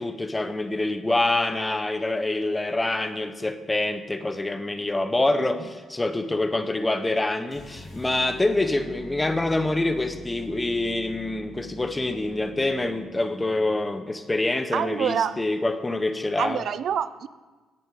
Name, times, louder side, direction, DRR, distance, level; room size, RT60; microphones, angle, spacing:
voice 1, 0.0-16.6, left 2 dB, 15° left, 10 dB, 0.8 m, -26 dB
sound 1, 7.5-13.7, right 1 dB, 40° left, 3.7 m, -43 dB
voice 2, 14.7-15.4 16.4-17.3, right 8 dB, 65° right, 15 dB, 0.3 m, -26 dB
9.9 x 8.6 x 4.8 m, 1.3 s
cardioid pair, 90°, 0 cm